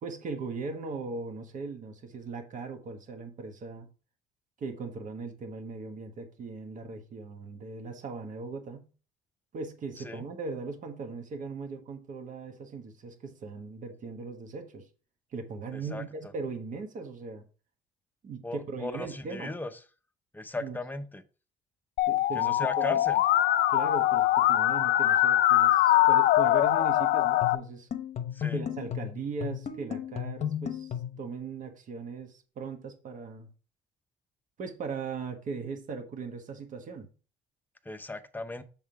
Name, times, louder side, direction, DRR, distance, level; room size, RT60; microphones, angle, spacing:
voice 1, 0.0-3.9 4.6-8.9 9.5-14.9 15.3-17.4 18.2-19.5 20.6-20.8 22.1-23.0 23.7-27.9 28.5-33.5 34.6-37.1, right 4 dB, 50° right, 1.3 m, -39 dB
voice 2, 15.7-16.0 18.4-19.7 20.3-21.2 22.3-23.2 28.3-28.6 37.9-38.6, left 2 dB, 10° left, 0.6 m, -37 dB
Musical instrument, 22.0-27.5, left 14 dB, 70° left, 0.5 m, -23 dB
sound 1, 27.4-31.3, left 9 dB, 40° left, 0.8 m, -35 dB
7.2 x 3.6 x 4.6 m
cardioid pair, 110°, 17 cm